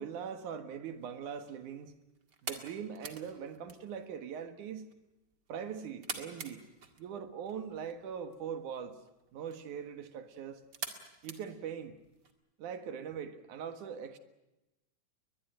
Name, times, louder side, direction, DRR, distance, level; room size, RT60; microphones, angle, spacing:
voice 1, 0.0-1.9 2.4-4.9 5.5-6.7 7.0-9.0 9.3-10.6 11.2-12.0 12.6-14.2, right 7 dB, 70° right, 3.0 m, -41 dB
sound 1, 0.9-12.3, right 5 dB, 35° right, 2.2 m, -48 dB
21.5 x 21.5 x 9.1 m
omnidirectional pair, 3.7 m